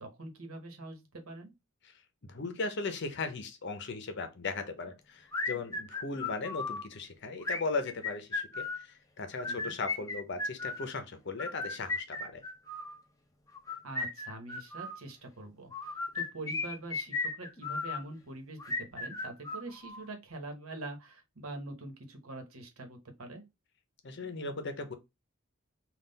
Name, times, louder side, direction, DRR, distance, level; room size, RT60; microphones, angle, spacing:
voice 1, 0.0-1.5 9.4-9.7 13.8-23.4, right 2 dB, 80° right, 1.1 m, -44 dB
voice 2, 2.2-12.4 24.0-24.9, left 3 dB, 55° left, 0.7 m, -37 dB
sound 1, 5.3-6.8 7.4-8.8 9.3-10.9 11.4-13.0 13.5-15.0 15.7-18.0 18.6-20.1, left 3 dB, 15° left, 0.6 m, -36 dB
3.8 x 2.4 x 3.9 m
head